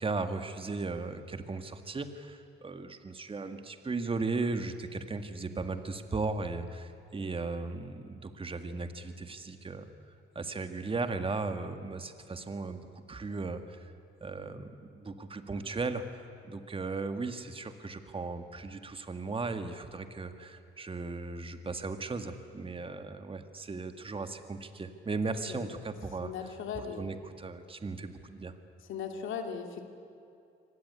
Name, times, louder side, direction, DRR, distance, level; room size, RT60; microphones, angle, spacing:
voice 1, 0.0-9.9 10.4-12.8 13.1-13.9 14.2-26.3 27.0-28.5, right 3 dB, 25° right, 8 dB, 1.9 m, -36 dB
voice 2, 25.5-25.9 26.2-27.1 28.9-29.8, left 6 dB, 80° left, 5 dB, 2.4 m, -38 dB
25.0 x 18.5 x 9.7 m, 2.6 s
cardioid pair, 90°, 20 cm